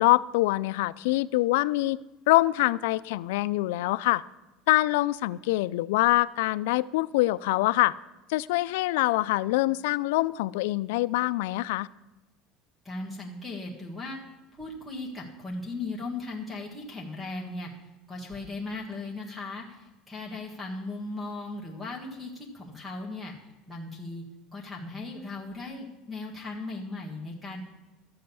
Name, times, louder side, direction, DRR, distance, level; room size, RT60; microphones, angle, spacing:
voice 1, 0.0-2.0 2.3-4.2 4.7-7.9 8.3-11.9, left 18 dB, 85° left, 17 dB, 0.4 m, -24 dB
voice 2, 12.8-14.2 14.5-17.7 18.1-23.3 23.7-24.2 24.5-27.6, left 2 dB, ahead, 2 dB, 1.6 m, -37 dB
12.5 x 7.7 x 6.9 m, 1.1 s
cardioid pair, 165°, 0 cm